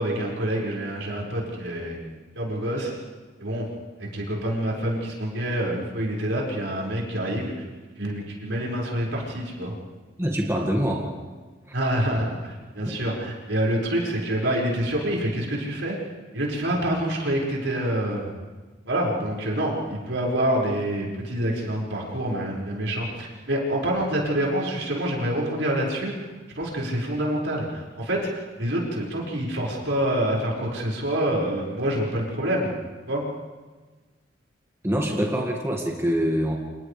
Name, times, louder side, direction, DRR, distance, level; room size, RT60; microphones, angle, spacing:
voice 1, 0.0-2.0 2.3-2.9 3.4-3.6 4.0-7.5 8.0-9.7 11.7-16.0 16.3-18.3 18.9-26.3 26.5-32.7 33.1-33.2, right 1 dB, 80° right, -3 dB, 5.9 m, -27 dB
voice 2, 10.2-11.1 11.7-11.8 12.9-13.0 34.8-36.6, equal, 15° right, -1 dB, 2.1 m, -25 dB
29.5 x 27.5 x 3.5 m, 1.3 s
head